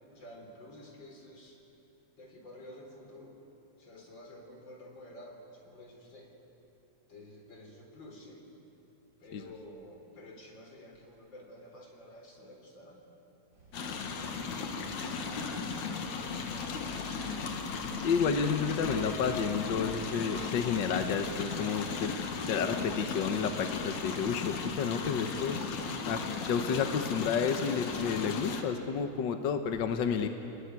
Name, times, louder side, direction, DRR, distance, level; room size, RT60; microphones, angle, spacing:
voice 1, 0.1-1.6 2.2-3.4 3.8-6.3 7.1-8.5 9.2-13.0 14.3-17.3, left 1 dB, 40° left, 2 dB, 4.5 m, -51 dB
sound 1, 13.5-27.4, right 2 dB, 30° right, 4.8 m, -54 dB
sound 2, 13.7-28.6, left 5 dB, 80° left, 3.2 m, -36 dB
voice 2, 18.0-22.1 22.5-25.6 26.0-30.3, left 6 dB, 60° left, 7 dB, 1.2 m, -31 dB
29.0 x 20.0 x 9.6 m, 2.9 s
omnidirectional pair, 3.3 m